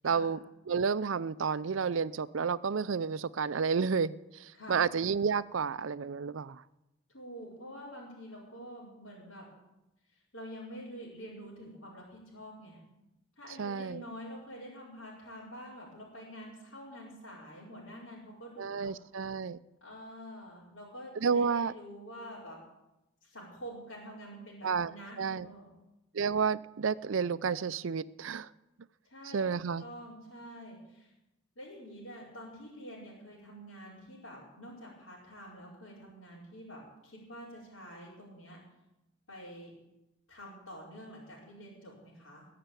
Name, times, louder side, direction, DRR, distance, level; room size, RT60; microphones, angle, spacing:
voice 1, 0.0-0.4 0.7-6.6 13.6-14.0 18.6-19.6 21.2-21.7 24.6-24.9 25.2-25.5 26.1-28.5 29.3-29.8, right 6 dB, 70° right, 0.5 m, -31 dB
voice 2, 4.5-4.9 7.1-9.5 10.3-12.8 13.4-19.0 19.8-22.6 23.2-25.7 29.0-29.5 29.8-31.1 31.5-38.6 39.3-39.7 40.3-42.5, equal, 70° left, 4.8 m, -47 dB
20.0 x 6.8 x 9.0 m
head